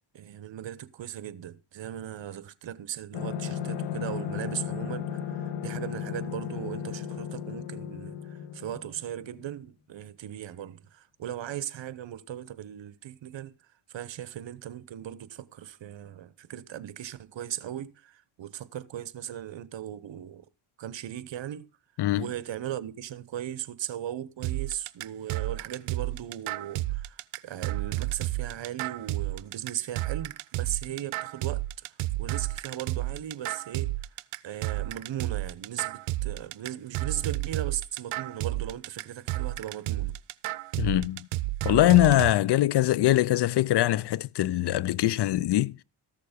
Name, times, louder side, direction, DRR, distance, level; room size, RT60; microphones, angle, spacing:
voice 1, 0.1-13.5 13.9-20.4 20.8-21.7 22.2-33.9 34.4-40.2, right 11 dB, 60° right, 0.9 m, -38 dB
sound 1, 3.1-9.4, left 8 dB, 85° left, 1.4 m, -35 dB
sound 2, 24.4-42.3, right 17 dB, 90° right, 0.6 m, -31 dB
voice 2, 40.8-41.3 41.6-45.8, left 15 dB, 55° left, 0.5 m, -22 dB
14.0 x 6.7 x 5.1 m
cardioid pair, 90°, 50 cm